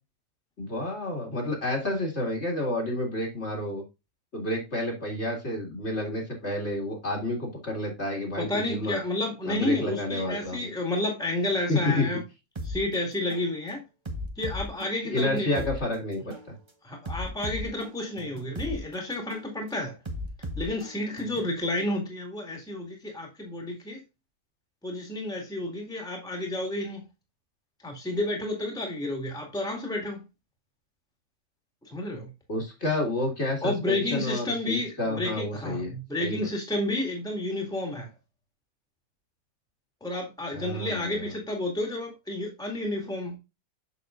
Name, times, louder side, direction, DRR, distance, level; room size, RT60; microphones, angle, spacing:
voice 1, 0.6-3.8 4.3-9.0 9.4-10.7 11.7-12.1 15.1-16.3 32.5-35.9 36.2-36.5 40.5-41.3, left 1 dB, 45° left, 2.5 m, -30 dB
voice 2, 8.4-12.2 12.6-13.8 14.4-15.5 16.8-20.0 20.6-24.0 24.8-27.0 27.8-30.2 31.9-32.3 33.6-38.1 40.0-43.4, left 1 dB, 5° left, 2.0 m, -31 dB
sound 1, 12.6-12.8 13.3-13.5 14.1-15.8 16.3-16.5 17.1-18.8 19.3-19.5 20.1-21.6, left 1 dB, 20° right, 0.9 m, -36 dB
7.1 x 6.5 x 2.5 m
omnidirectional pair, 1.5 m